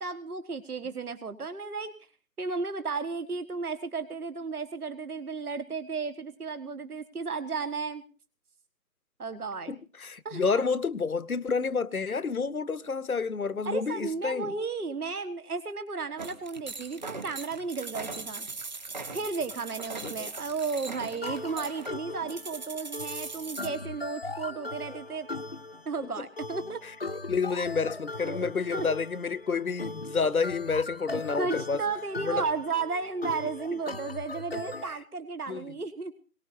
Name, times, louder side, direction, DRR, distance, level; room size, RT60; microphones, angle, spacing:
voice 1, 0.0-1.9 2.4-8.0 9.2-9.7 10.3-10.4 13.7-18.5 19.1-25.3 25.9-27.2 28.2-28.9 31.1-36.1, right 4 dB, 65° right, 1.8 m, -34 dB
voice 2, 9.7-14.5 20.0-20.3 26.0-26.3 26.8-26.9 27.3-31.8 32.2-32.4 33.7-33.8 35.5-35.8, left 5 dB, 60° left, 1.0 m, -29 dB
sound 1, 16.2-23.7, right 3 dB, 25° right, 1.5 m, -40 dB
sound 2, 21.2-34.9, left 2 dB, 40° left, 0.8 m, -39 dB
22.5 x 19.0 x 2.7 m
figure-of-eight pair, 165°, 49 cm